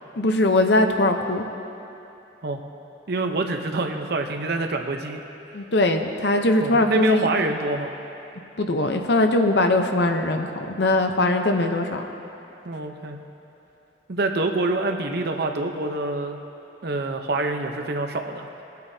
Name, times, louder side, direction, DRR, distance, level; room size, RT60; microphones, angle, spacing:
voice 1, 0.2-1.4 5.5-7.3 8.6-12.0, left 2 dB, 60° left, 5 dB, 0.8 m, -21 dB
voice 2, 3.1-5.2 6.6-7.9 12.6-13.2 14.1-16.4 16.8-18.5, right 2 dB, 60° right, 5 dB, 0.8 m, -26 dB
22.0 x 9.3 x 2.8 m, 2.9 s
head